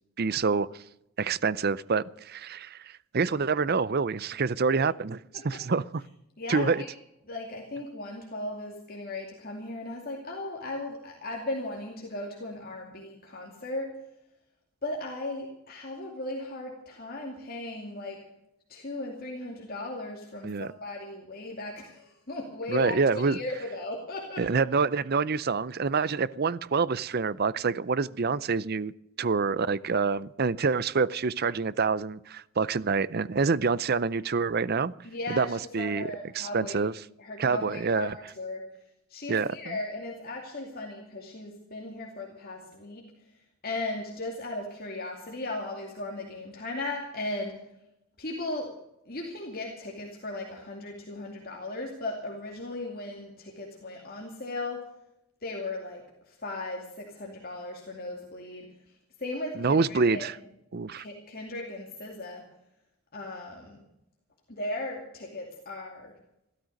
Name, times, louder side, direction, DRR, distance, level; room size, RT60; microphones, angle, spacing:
voice 1, 0.2-0.7 1.2-5.2 5.4-6.0 6.5-6.8 20.4-20.7 22.7-23.4 24.4-28.9 29.2-34.9 35.3-36.9 37.4-38.2 39.3-39.8 59.6-60.4 60.7-61.0, right 4 dB, 45° right, 0.5 m, -27 dB
voice 2, 6.4-6.9 7.2-13.9 14.8-18.2 18.7-24.6 35.0-36.8 37.2-38.1 38.4-38.6 39.1-43.0 43.6-47.6 48.2-48.7 49.1-54.8 55.4-58.7 59.2-60.3 61.0-62.4 63.1-63.8 64.5-66.1, left 2 dB, 45° left, 2.5 m, -37 dB
15.5 x 13.0 x 6.5 m
head